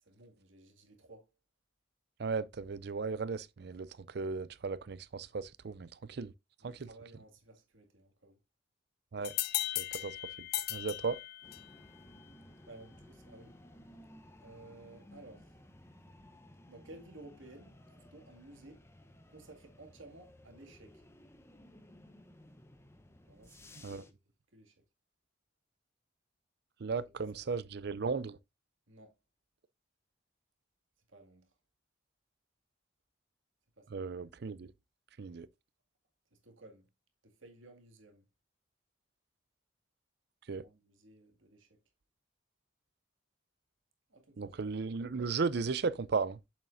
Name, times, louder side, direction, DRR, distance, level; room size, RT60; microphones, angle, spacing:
voice 1, 0.0-1.3 6.6-8.4 12.7-13.6 14.4-15.6 16.7-18.8 19.3-21.0 23.2-24.2 24.5-24.8 27.3-27.5 28.9-29.1 31.1-31.5 33.8-34.0 36.3-36.9 37.2-38.2 40.5-41.7 44.1-44.6, right 2 dB, 80° right, 2.1 m, -56 dB
voice 2, 2.2-6.3 6.6-6.9 9.1-9.3 9.8-10.2 10.7-11.2 23.8-24.0 26.8-28.4 33.9-34.7 35.2-35.5 40.5-40.6 44.4-46.4, right 4 dB, 55° right, 0.5 m, -36 dB
sound 1, 9.2-11.8, left 14 dB, 50° left, 0.5 m, -37 dB
sound 2, 11.4-24.1, left 1 dB, 15° left, 0.8 m, -57 dB
8.4 x 7.3 x 2.6 m
head